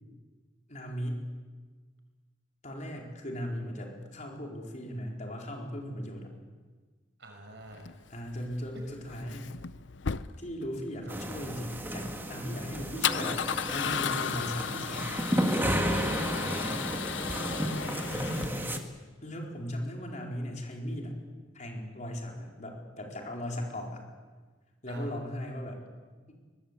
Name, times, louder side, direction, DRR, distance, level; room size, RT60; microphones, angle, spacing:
voice 1, 0.7-1.2 2.6-6.3 8.1-9.5 10.4-15.2 18.2-18.8 19.2-21.2 21.5-24.0 24.8-25.8, equal, 40° left, 0 dB, 4.4 m, -38 dB
voice 2, 7.2-7.9 8.7-8.8 11.1-11.2 16.1-18.1 24.9-25.2, right 1 dB, 65° right, 3 dB, 6.0 m, -48 dB
Male speech man speaking / Car / Engine starting, 7.7-18.8, left 8 dB, 70° left, 0.7 m, -36 dB
sound 1, 11.1-18.8, equal, 10° right, 1.9 m, -32 dB
23.5 x 20.5 x 8.3 m, 1.4 s
head